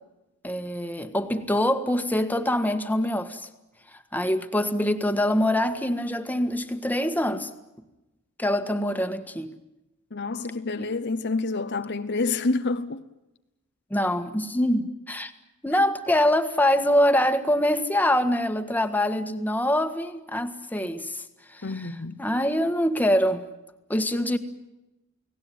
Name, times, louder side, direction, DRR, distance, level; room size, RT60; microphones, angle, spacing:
voice 1, 0.4-3.5 3.9-7.5 8.4-9.5 10.8-10.9 13.9-15.3 15.6-21.9 22.2-23.4 23.9-24.4, left 1 dB, 10° left, 1.6 m, -24 dB
voice 2, 10.1-13.0 21.6-22.2, left 3 dB, 50° left, 0.9 m, -28 dB
29.5 x 18.5 x 9.4 m
head